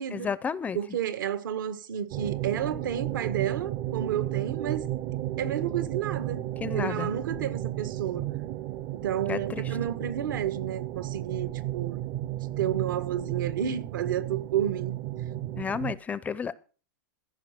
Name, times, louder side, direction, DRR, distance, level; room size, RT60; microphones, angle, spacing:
voice 1, 0.1-0.8 6.6-7.1 9.3-9.6 15.6-16.5, left 6 dB, 15° left, 0.5 m, -32 dB
voice 2, 0.8-4.9 5.4-8.3 8.9-12.0 12.6-15.0, right 9 dB, 75° right, 1.6 m, -31 dB
sound 1, 2.1-16.0, right 14 dB, 40° right, 0.6 m, -33 dB
15.0 x 5.7 x 6.8 m
hypercardioid pair, 140°, 11 cm